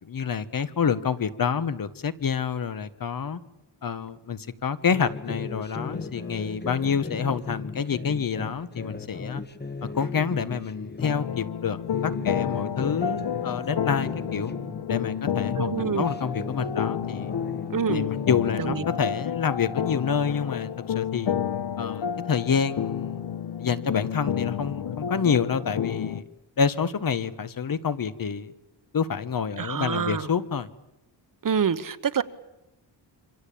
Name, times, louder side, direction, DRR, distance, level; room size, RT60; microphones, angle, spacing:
voice 1, 0.0-3.4 3.8-9.4 9.8-14.5 14.9-17.3 17.9-21.3 21.8-23.2 23.6-26.2 26.6-28.5 28.9-30.7, left 6 dB, 50° left, 13 dB, 1.3 m, -28 dB
sound 1, 4.9-11.4 11.8-15.1 15.4-18.5, left 4 dB, 25° left, 1.4 m, -36 dB
sound 2, 11.0-26.2, left 9 dB, 70° left, 1.2 m, -30 dB
voice 2, 15.6-16.1 17.7-18.1 18.6-18.8 29.6-30.3 31.4-32.2, right 7 dB, 50° right, 14 dB, 1.2 m, -26 dB
27.0 x 25.5 x 8.6 m, 0.90 s
wide cardioid pair, 170°, 43 cm